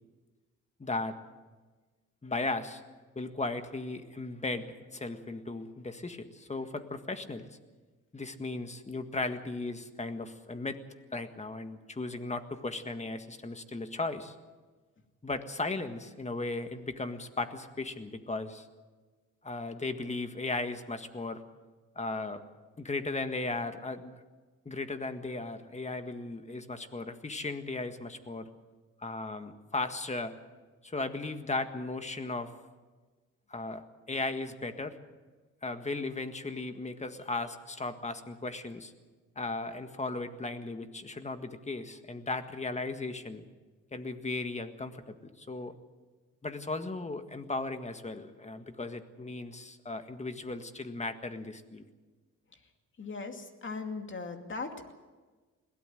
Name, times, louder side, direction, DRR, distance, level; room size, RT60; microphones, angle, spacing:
voice 1, 0.8-1.2 2.2-2.8 3.1-7.5 8.1-10.8 11.1-14.3 15.2-18.7 19.4-21.4 21.9-22.4 22.8-24.2 24.6-28.5 29.0-30.4 30.8-32.5 33.5-35.0 35.6-38.9 39.3-43.4 43.9-45.7 46.4-51.8, left 3 dB, 20° left, 8 dB, 1.7 m, -36 dB
voice 2, 53.0-54.9, left 4 dB, 40° left, 5 dB, 2.5 m, -39 dB
21.5 x 17.0 x 7.8 m, 1.3 s
cardioid pair, 95°, 31 cm